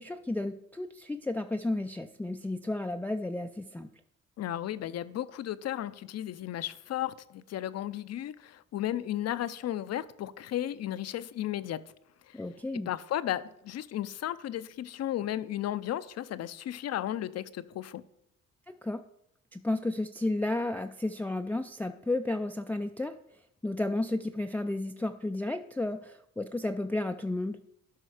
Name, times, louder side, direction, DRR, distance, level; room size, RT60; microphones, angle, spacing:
voice 1, 0.0-3.9 12.3-12.9 18.7-19.0 19.5-23.2 23.6-27.6, left 2 dB, 5° left, 0.4 m, -32 dB
voice 2, 4.4-11.9 12.3-12.4 12.9-18.0, left 12 dB, 60° left, 0.6 m, -34 dB
12.0 x 5.5 x 4.9 m
cardioid pair, 90°, 30 cm